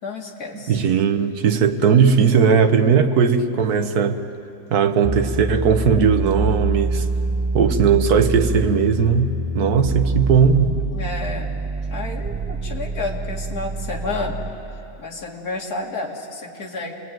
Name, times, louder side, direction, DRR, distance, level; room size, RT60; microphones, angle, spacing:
voice 1, 0.0-0.8 10.9-14.4 15.0-17.1, left 3 dB, 65° left, 0 dB, 2.7 m, -31 dB
voice 2, 0.5-4.2 4.7-7.0 7.5-10.7, right 6 dB, 70° right, 7 dB, 1.6 m, -18 dB
sound 1, 5.0-14.6, right 2 dB, 15° right, 0.8 m, -25 dB
28.5 x 20.5 x 9.2 m, 2.8 s
omnidirectional pair, 1.7 m